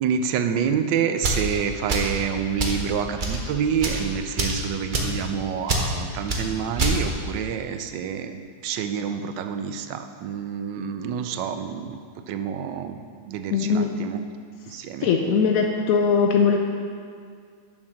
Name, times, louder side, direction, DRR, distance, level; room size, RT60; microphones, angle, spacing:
voice 1, 0.0-12.0 12.3-14.2 14.7-15.1, right 7 dB, 75° right, 8 dB, 1.2 m, -28 dB
sound 1, 1.2-1.5 1.9-2.2 2.6-2.8 3.2-3.4 3.8-4.0 4.4-4.6 4.9-5.2 5.7-5.9 6.3-6.4 6.8-7.0, right 2 dB, 40° right, 0.7 m, -25 dB
voice 2, 13.5-13.9 15.0-16.6, left 5 dB, 75° left, 2 dB, 0.8 m, -20 dB
7.2 x 6.4 x 6.3 m, 2.1 s
omnidirectional pair, 2.1 m